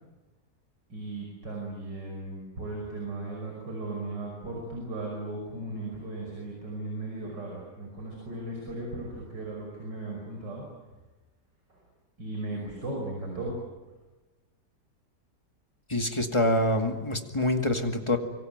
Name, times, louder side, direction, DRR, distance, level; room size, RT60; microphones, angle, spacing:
voice 1, 0.9-10.6 11.7-11.8 12.2-13.5, right 2 dB, 90° right, 0 dB, 6.3 m, -36 dB
voice 2, 15.9-18.2, left 1 dB, 15° left, 5 dB, 2.1 m, -26 dB
25.5 x 23.5 x 9.4 m, 1.2 s
omnidirectional pair, 1.8 m